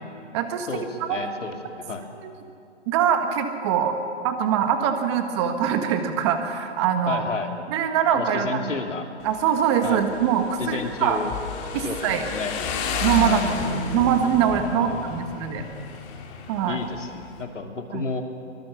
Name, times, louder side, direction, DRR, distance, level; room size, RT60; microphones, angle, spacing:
voice 1, 0.3-0.7 1.0-1.2 2.2-2.3 2.9-4.0 4.2-7.2 7.7-8.8 9.2-11.2 11.7-12.3 13.0-13.5 13.9-15.6 16.5-16.8 17.9-18.0, right 8 dB, 25° right, 7 dB, 1.5 m, -23 dB
voice 2, 1.1-1.5 1.9-2.0 7.1-7.5 8.1-9.0 9.8-10.0 10.6-11.3 11.8-12.0 12.3-12.5 13.3-13.5 14.8-15.2 16.7-17.1 17.4-18.2, left 4 dB, 85° left, 3 dB, 3.3 m, -31 dB
Motorcycle, 9.2-17.4, left 6 dB, 20° left, 2.1 m, -32 dB
24.0 x 20.5 x 7.1 m, 2.5 s
hypercardioid pair, 155°, 36 cm